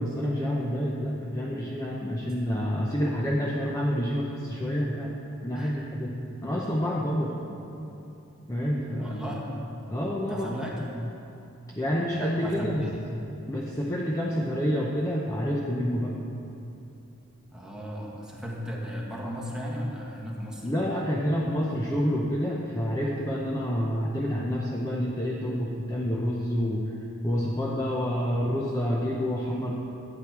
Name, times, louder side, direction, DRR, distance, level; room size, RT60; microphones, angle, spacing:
voice 1, 0.0-5.1 5.4-7.4 8.5-9.2 9.9-10.5 10.8-10.9 11.7-12.8 13.5-16.1 20.6-27.0 27.2-29.7, equal, 15° left, -3 dB, 0.7 m, -28 dB
voice 2, 5.5-6.1 7.5-7.6 9.0-9.4 10.3-10.8 12.4-13.0 17.5-20.7, equal, 5° right, -4 dB, 1.5 m, -36 dB
12.0 x 8.8 x 4.7 m, 2.8 s
head